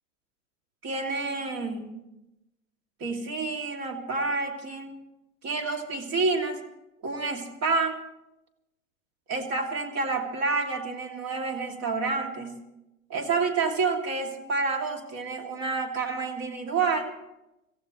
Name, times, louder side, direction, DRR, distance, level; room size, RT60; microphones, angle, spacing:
voice 1, 0.8-1.9 3.0-4.9 5.4-6.6 7.0-8.0 9.3-12.5 13.1-17.1, right 4 dB, 40° right, 3 dB, 2.7 m, -29 dB
25.5 x 15.5 x 3.1 m, 0.93 s
hypercardioid pair, 95°, 40 cm